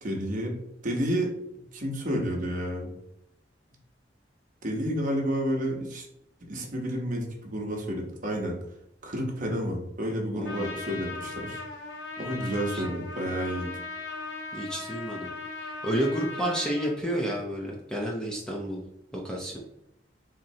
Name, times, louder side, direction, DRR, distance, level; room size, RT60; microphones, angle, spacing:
voice 1, 0.0-0.5 0.8-1.3 1.7-2.9 4.6-6.1 6.5-8.5 9.0-11.6 12.2-13.7, equal, 50° right, 0 dB, 0.9 m, -30 dB
voice 2, 10.3-10.8 12.4-12.8 14.5-15.3 15.6-18.8 19.1-19.6, right 1 dB, 5° left, -2 dB, 0.5 m, -31 dB
Trumpet, 10.4-16.9, left 3 dB, 85° left, 0.8 m, -38 dB
4.0 x 3.0 x 2.7 m, 0.81 s
head